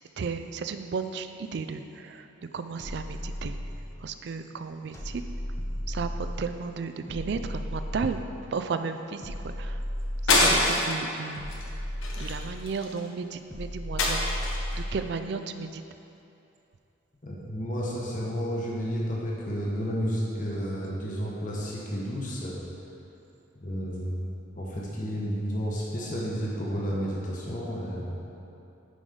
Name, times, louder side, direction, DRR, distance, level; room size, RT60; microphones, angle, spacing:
voice 1, 0.2-2.3 2.5-3.6 4.0-5.2 5.9-9.8 10.2-11.5 12.2-14.4 14.7-15.8, right 5 dB, 55° right, 9 dB, 0.3 m, -34 dB
sound 1, 2.8-4.1 4.9-6.6 7.1-8.5 9.2-10.8 11.4-12.8 13.5-15.1, equal, 15° left, 0.8 m, -34 dB
sound 2, 10.3-11.0 11.5-11.7 12.0-13.0 14.0-14.8, left 2 dB, 80° left, 1.1 m, -24 dB
voice 2, 17.2-22.6 23.6-24.3 24.5-28.2, equal, 40° left, -5 dB, 1.2 m, -31 dB
10.0 x 5.0 x 3.8 m, 2.8 s
head